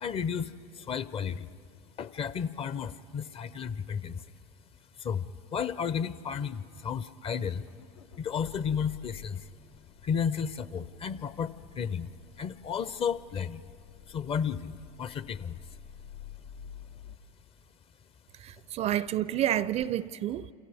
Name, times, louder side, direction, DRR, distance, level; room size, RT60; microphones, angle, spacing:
voice 1, 0.0-1.5 2.0-4.3 5.0-7.7 8.2-9.5 10.0-12.1 12.4-13.6 14.1-15.6, left 7 dB, 30° left, 0.6 m, -33 dB
Accelerating revving vroom, 7.6-17.2, left 8 dB, 85° left, 0.9 m, -50 dB
voice 2, 18.3-20.5, right 12 dB, 35° right, 0.4 m, -29 dB
29.0 x 28.0 x 3.5 m
hypercardioid pair, 90°, 19 cm